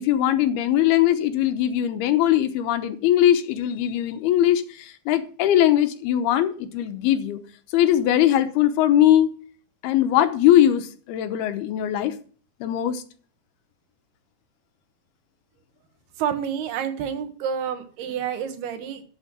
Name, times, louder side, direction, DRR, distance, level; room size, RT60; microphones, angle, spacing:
voice 1, 0.0-7.4 7.7-9.3 9.8-12.2 12.6-13.0, left 11 dB, 90° left, 9 dB, 2.9 m, -20 dB
voice 2, 16.2-19.0, right 8 dB, 85° right, 8 dB, 3.4 m, -29 dB
12.5 x 6.4 x 6.0 m, 0.42 s
omnidirectional pair, 4.4 m